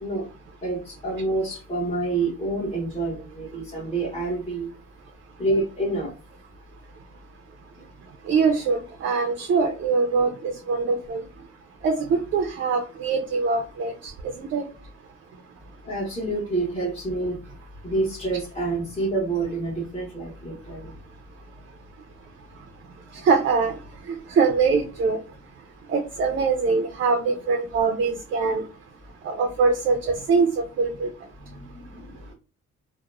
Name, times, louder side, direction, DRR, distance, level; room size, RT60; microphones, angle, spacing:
voice 1, 0.6-4.7 5.4-6.1 15.8-17.4 17.8-20.9 31.4-32.3, right 2 dB, 20° left, -6 dB, 1.0 m, -28 dB
voice 2, 8.3-11.2 11.8-14.1 14.4-14.6 23.2-23.7 24.1-25.2 25.9-28.6 29.2-31.1, right 4 dB, 45° right, 4 dB, 0.4 m, -23 dB
2.9 x 2.0 x 2.3 m, 0.33 s
cardioid pair, 90°, 30 cm